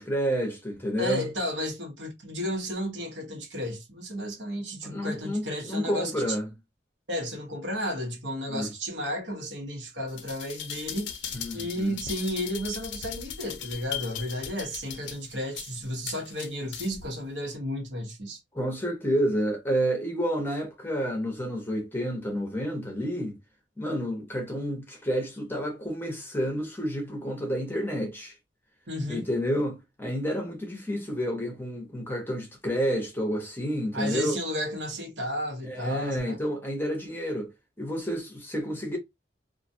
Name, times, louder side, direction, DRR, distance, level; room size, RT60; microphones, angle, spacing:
voice 1, 0.0-1.3 4.9-6.5 8.5-8.7 11.3-11.9 18.5-23.4 23.8-28.4 29.1-34.4 35.6-37.5 37.8-39.0, equal, 10° left, 0.7 m, -30 dB
voice 2, 1.0-6.4 7.1-18.4 28.9-29.3 33.9-36.4, equal, 80° right, 1.1 m, -33 dB
sound 1, 10.1-17.1 17.5-17.6, left 8 dB, 80° left, 0.5 m, -38 dB
2.4 x 2.2 x 2.6 m
head